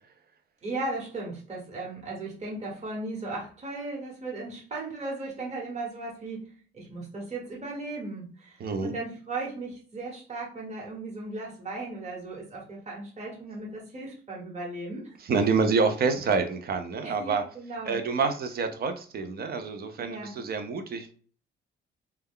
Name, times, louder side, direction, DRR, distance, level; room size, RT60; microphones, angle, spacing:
voice 1, 0.6-15.0 17.0-18.0 20.0-20.4, right 2 dB, 35° right, -3 dB, 1.2 m, -37 dB
voice 2, 8.6-8.9 15.2-17.4 17.8-21.1, right 4 dB, 50° right, 7 dB, 0.5 m, -27 dB
2.3 x 2.2 x 3.5 m, 0.42 s
cardioid pair, 90°, 20 cm